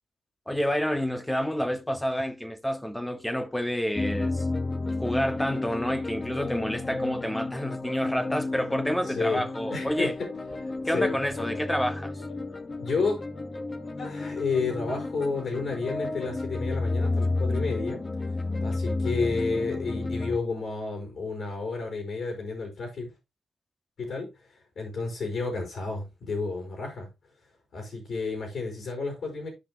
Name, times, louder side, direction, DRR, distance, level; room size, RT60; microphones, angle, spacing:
voice 1, 0.5-4.4 5.0-10.1 10.8-12.1, equal, 10° left, 1.6 m, -29 dB
sound 1, 4.0-20.4, left 2 dB, 35° left, 1.5 m, -32 dB
voice 2, 9.0-9.4 9.7-10.3 10.6-11.1 12.8-13.2 14.0-18.0 18.6-23.1 24.0-27.1 27.7-29.5, left 4 dB, 65° left, 4.8 m, -31 dB
13.0 x 5.3 x 3.0 m
supercardioid pair, 55°, 0 cm